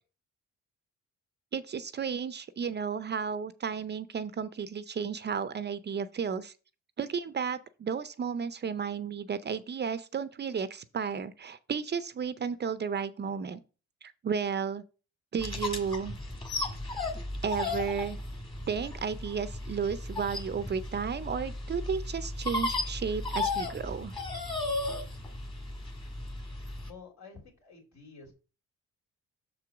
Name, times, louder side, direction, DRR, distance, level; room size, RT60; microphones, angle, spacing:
voice 1, 1.5-6.5 7.0-13.6 14.0-14.8 15.3-16.2 17.4-18.2 18.7-24.1, right 6 dB, 35° right, 0.5 m, -33 dB
sound 1, 15.4-26.9, left 2 dB, 15° left, 1.7 m, -35 dB
voice 2, 26.8-28.3, left 4 dB, 65° left, 3.1 m, -50 dB
6.7 x 4.6 x 4.9 m
cardioid pair, 90°, 30 cm